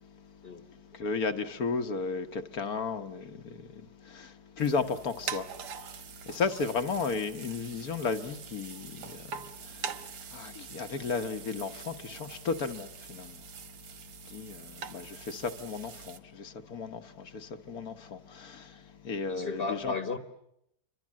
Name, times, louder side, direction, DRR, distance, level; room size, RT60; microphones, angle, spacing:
voice 1, 0.9-5.5 5.9-6.0 6.2-13.4 14.2-19.9, left 5 dB, 60° left, 1.6 m, -34 dB
sound 1, 4.6-16.2, right 7 dB, 75° right, 1.8 m, -44 dB
voice 2, 19.2-20.2, left 4 dB, 35° left, 1.6 m, -34 dB
29.0 x 24.5 x 7.4 m
omnidirectional pair, 1.8 m